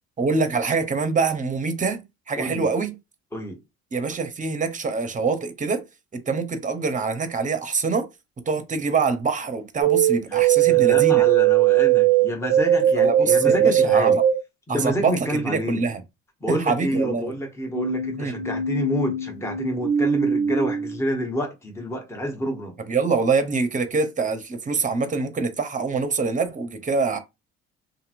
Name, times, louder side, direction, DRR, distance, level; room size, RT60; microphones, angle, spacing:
voice 1, 0.2-3.0 3.9-5.8 6.1-8.1 8.5-11.2 13.0-14.2 14.7-16.0 16.5-17.3 18.1-18.3 22.9-27.2, right 4 dB, 25° right, 0.8 m, -25 dB
voice 2, 2.4-2.7 3.3-3.6 10.3-14.2 14.7-15.8 16.4-22.7, equal, 10° left, 1.0 m, -28 dB
sound 1, 9.8-14.4 17.7-21.0, right 9 dB, 70° right, 0.6 m, -20 dB
2.9 x 2.7 x 2.5 m
supercardioid pair, 70°, 31 cm